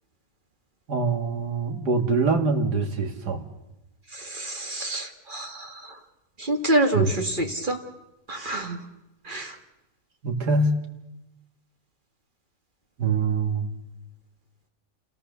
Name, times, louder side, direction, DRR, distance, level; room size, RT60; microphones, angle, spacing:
voice 1, 0.9-3.4 6.9-7.1 10.2-10.7 13.0-13.7, right 4 dB, 85° right, 6 dB, 2.5 m, -24 dB
voice 2, 4.1-5.7 6.4-7.8 8.3-8.8 9.3-9.5, right 1 dB, 30° right, 5 dB, 2.0 m, -27 dB
28.0 x 17.5 x 6.9 m, 0.95 s
omnidirectional pair, 1.7 m